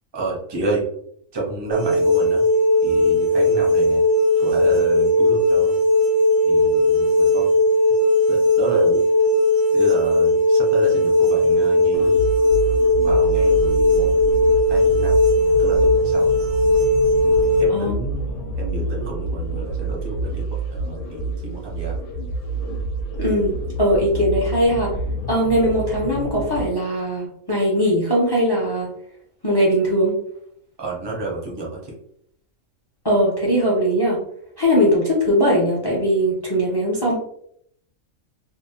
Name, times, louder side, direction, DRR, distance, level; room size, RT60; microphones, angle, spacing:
voice 1, 0.1-0.9 1.3-2.4 2.8-4.0 4.4-5.8 6.4-7.5 8.3-9.0 9.7-12.1 13.0-14.1 14.7-15.2 15.6-16.3 17.2-22.0 30.8-31.9, right 3 dB, 30° right, -2 dB, 0.5 m, -30 dB
sound 1, 1.7-17.6, left 1 dB, 70° right, 0.9 m, -17 dB
sound 2, 11.9-26.7, right 2 dB, 75° left, 0.9 m, -28 dB
voice 2, 23.2-24.9 25.3-28.9 29.4-30.2 33.0-34.2 34.6-37.2, equal, 35° left, -4 dB, 0.4 m, -20 dB
2.6 x 2.0 x 2.6 m, 0.69 s
omnidirectional pair, 1.4 m